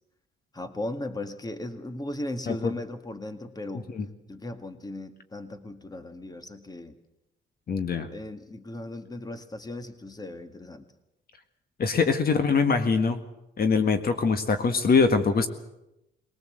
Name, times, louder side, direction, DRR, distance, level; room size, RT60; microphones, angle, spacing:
voice 1, 0.5-3.9 4.3-6.9 8.1-10.8 11.9-12.1, left 1 dB, 20° left, 9 dB, 2.0 m, -37 dB
voice 2, 7.7-8.1 11.8-13.2 13.6-15.5, left 5 dB, 50° left, 8 dB, 1.8 m, -23 dB
21.5 x 19.0 x 7.8 m, 0.90 s
cardioid pair, 90°, 20 cm